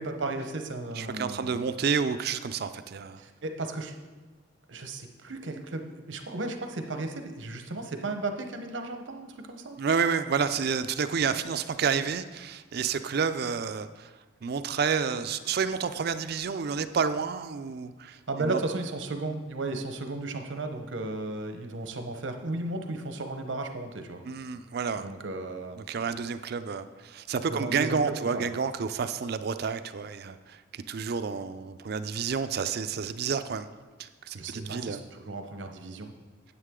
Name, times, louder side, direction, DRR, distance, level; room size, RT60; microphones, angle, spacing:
voice 1, 0.0-1.6 3.2-3.9 4.7-9.8 18.3-24.2 25.0-25.8 27.5-28.5 34.3-36.1, right 2 dB, 90° right, 6 dB, 0.9 m, -35 dB
voice 2, 0.9-3.2 9.8-14.1 14.4-18.6 24.2-25.1 25.8-33.7 34.0-35.0, right 6 dB, 55° right, 11 dB, 0.4 m, -30 dB
9.7 x 8.3 x 3.7 m, 1.3 s
head